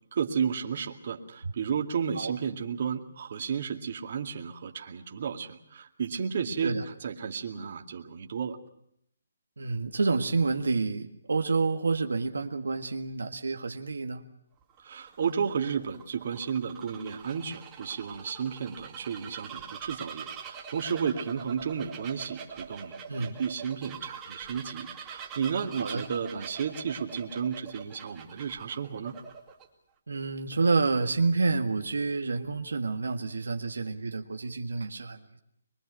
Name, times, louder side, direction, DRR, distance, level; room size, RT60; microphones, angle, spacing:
voice 1, 0.1-8.6 14.8-29.2, right 7 dB, 50° right, 3 dB, 2.2 m, -33 dB
voice 2, 9.6-14.2 23.1-23.4 25.8-26.0 30.1-35.4, right 3 dB, 90° right, 4 dB, 1.8 m, -29 dB
Bird vocalization bird call bird song, 14.6-29.6, right 7 dB, 15° right, 2.5 m, -44 dB
23.5 x 23.5 x 6.3 m, 0.74 s
hypercardioid pair, 160°, 0 cm